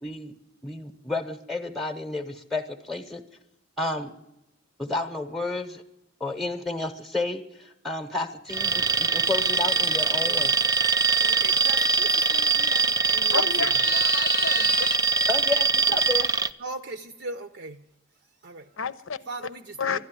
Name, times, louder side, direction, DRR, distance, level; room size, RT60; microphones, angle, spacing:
voice 1, 0.0-0.3 0.6-3.2 3.8-4.1 4.8-5.8 6.2-10.5 15.3-16.3, left 3 dB, ahead, 7 dB, 0.9 m, -31 dB
Alarm, 8.5-16.5, right 5 dB, 20° right, 0.5 m, -23 dB
sound 1, 10.5-11.3 13.6-15.0, left 9 dB, 45° left, 0.7 m, -34 dB
voice 2, 11.2-13.5 16.6-17.8 18.4-18.7 19.3-20.0, right 3 dB, 55° right, 8 dB, 0.7 m, -39 dB
voice 3, 13.3-14.9 18.8-19.5 19.8-20.0, left 5 dB, 75° left, 15 dB, 0.8 m, -31 dB
12.5 x 10.5 x 9.6 m, 0.88 s
head